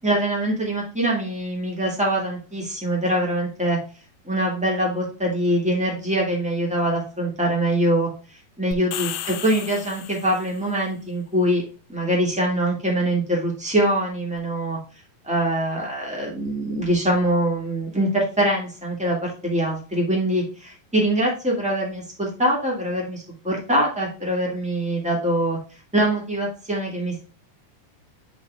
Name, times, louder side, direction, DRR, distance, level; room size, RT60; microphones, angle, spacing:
voice 1, 0.0-3.8 4.2-8.1 8.6-9.1 9.4-11.6 11.9-14.8 15.2-25.6 25.9-27.2, right 1 dB, 5° right, -3 dB, 0.5 m, -23 dB
sound 1, 8.7-10.6, left 10 dB, 85° left, 2.7 m, -34 dB
10.5 x 3.9 x 2.3 m, 0.38 s
omnidirectional pair, 4.3 m